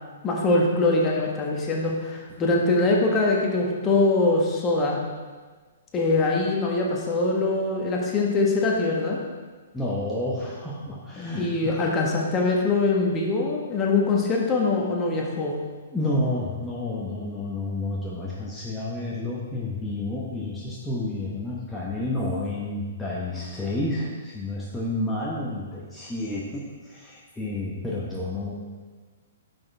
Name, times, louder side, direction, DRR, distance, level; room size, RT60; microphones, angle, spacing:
voice 1, 0.2-5.0 5.9-9.2 11.3-15.6, left 3 dB, 25° left, -1 dB, 1.5 m, -23 dB
voice 2, 9.7-11.9 15.9-28.5, left 2 dB, 5° left, -6 dB, 1.2 m, -30 dB
10.5 x 6.3 x 3.5 m, 1.4 s
figure-of-eight pair, 120°, 0 cm